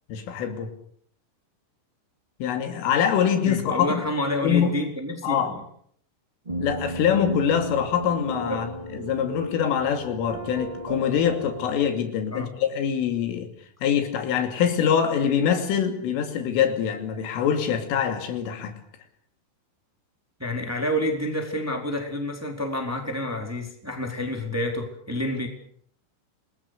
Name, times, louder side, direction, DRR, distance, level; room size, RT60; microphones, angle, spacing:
voice 1, 0.1-0.7 2.4-4.0 4.4-4.7 5.2-5.5 6.6-13.5 13.8-18.7, left 8 dB, 80° left, 6 dB, 5.2 m, -24 dB
voice 2, 3.4-5.6 8.5-8.6 12.3-12.5 18.7-18.8 20.4-25.5, left 1 dB, 5° right, 3 dB, 3.4 m, -29 dB
sound 1, 6.4-11.9, right 2 dB, 60° right, 0.4 m, -35 dB
28.5 x 20.5 x 6.7 m, 0.62 s
omnidirectional pair, 5.7 m